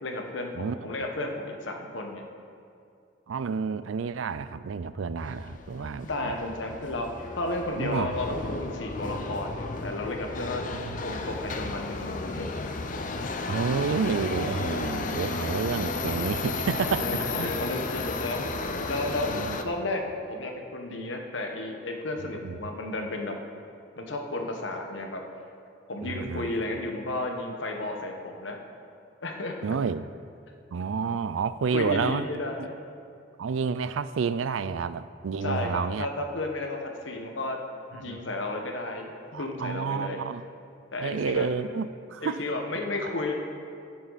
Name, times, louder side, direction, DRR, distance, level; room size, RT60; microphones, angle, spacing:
voice 1, 0.0-2.2 6.0-7.1 7.3-10.6 11.0-12.5 16.8-18.5 18.9-19.3 19.6-23.4 24.0-25.2 25.9-28.6 29.2-29.6 31.7-32.7 35.4-37.6 37.9-40.2 40.9-41.5 42.2-43.3, left 2 dB, 75° left, 3 dB, 1.3 m, -33 dB
voice 2, 0.6-0.9 3.3-6.3 7.8-8.2 10.7-11.0 13.5-17.5 18.5-18.6 19.3-19.6 22.4-22.6 26.0-26.5 29.6-30.1 30.7-32.3 33.4-36.1 38.0-38.2 39.3-40.4 41.0-42.4, right 5 dB, 85° right, 14 dB, 0.4 m, -30 dB
Subway metro underground, 5.2-19.6, left 3 dB, 40° left, 0.6 m, -33 dB
16.0 x 7.7 x 4.1 m, 2.5 s
head